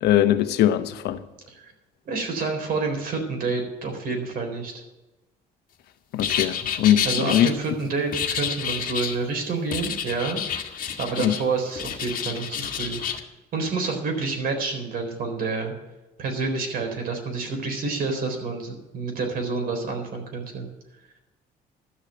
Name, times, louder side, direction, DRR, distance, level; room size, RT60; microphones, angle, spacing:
voice 1, 0.0-1.2 6.1-7.5 11.2-11.3, left 12 dB, 75° left, 1.0 m, -21 dB
voice 2, 2.1-4.8 7.0-10.4 11.0-13.2 13.5-15.7 16.2-20.7, right 4 dB, 60° right, 4.0 m, -28 dB
sound 1, 6.2-7.5 8.1-9.2 9.7-11.4 11.7-13.2, left 8 dB, 55° left, 1.7 m, -29 dB
12.5 x 6.8 x 9.2 m
cardioid pair, 110°, 17 cm